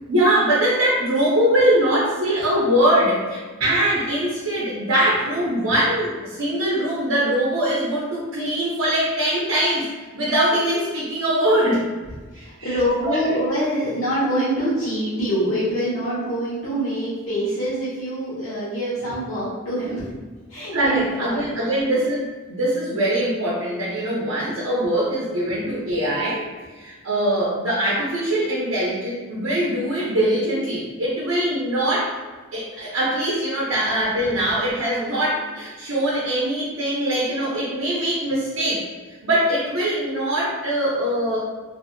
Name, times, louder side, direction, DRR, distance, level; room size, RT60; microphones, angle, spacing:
voice 1, 0.1-9.9 10.1-11.9 12.3-12.8 13.0-13.2 20.7-26.4 26.7-32.2 32.5-38.9 39.2-41.4, right 1 dB, 85° right, -6 dB, 0.7 m, -22 dB
voice 2, 12.3-20.1 20.5-21.5, equal, 85° left, -11 dB, 0.9 m, -25 dB
2.6 x 2.6 x 2.6 m, 1.4 s
head